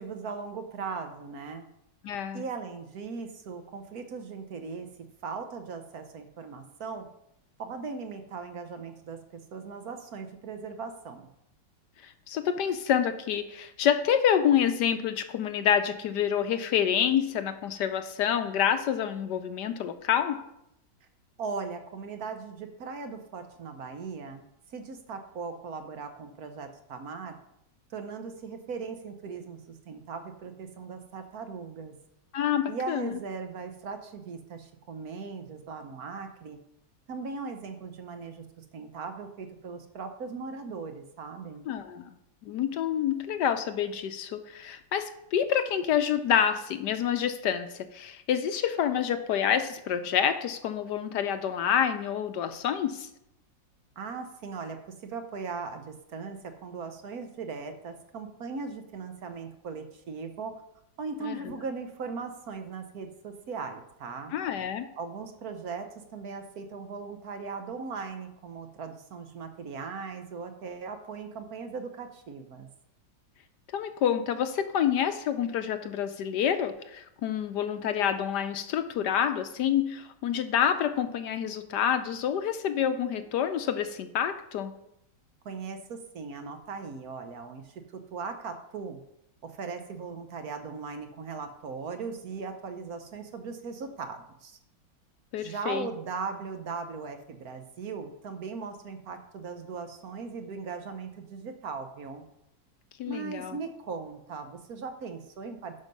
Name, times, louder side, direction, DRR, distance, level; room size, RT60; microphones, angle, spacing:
voice 1, 0.0-1.6 2.3-4.9 5.2-7.1 7.6-11.3 21.4-24.4 24.7-27.4 27.9-31.9 32.7-36.6 37.1-41.7 54.0-54.8 55.0-60.5 61.0-64.3 65.0-72.7 85.4-87.8 88.1-89.0 89.4-94.6 95.4-102.2 103.1-105.7, right 5 dB, 60° right, 7 dB, 1.2 m, -38 dB
voice 2, 2.0-2.4 12.0-20.5 32.3-33.2 41.7-42.1 42.4-53.1 61.2-61.5 64.3-64.9 73.7-84.7 95.3-95.9 103.0-103.6, left 9 dB, 70° left, 10 dB, 1.2 m, -28 dB
10.5 x 5.7 x 5.3 m, 0.79 s
omnidirectional pair, 2.0 m